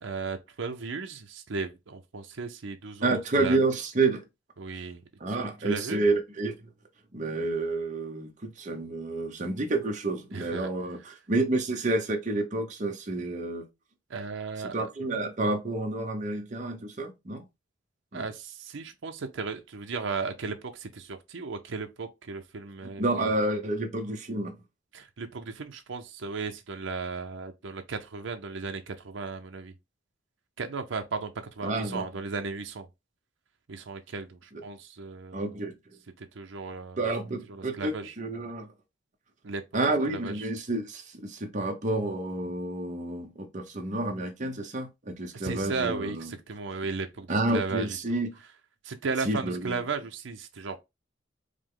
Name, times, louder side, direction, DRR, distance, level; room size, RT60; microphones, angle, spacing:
voice 1, 0.0-3.6 4.6-5.0 5.3-6.0 10.3-10.7 14.1-14.8 18.1-23.3 24.9-29.7 30.6-32.9 33.7-35.6 36.2-37.1 37.5-38.1 39.4-39.6 40.1-40.5 45.3-48.2 48.8-50.8, right 4 dB, 70° right, 0.6 m, -35 dB
voice 2, 3.0-4.2 5.2-6.5 7.1-13.6 14.7-17.4 18.1-18.3 22.8-24.5 31.6-32.0 35.3-35.7 37.0-38.7 39.7-46.3 47.3-48.3 49.2-49.7, right 2 dB, 40° right, 0.8 m, -29 dB
4.9 x 2.1 x 3.7 m
head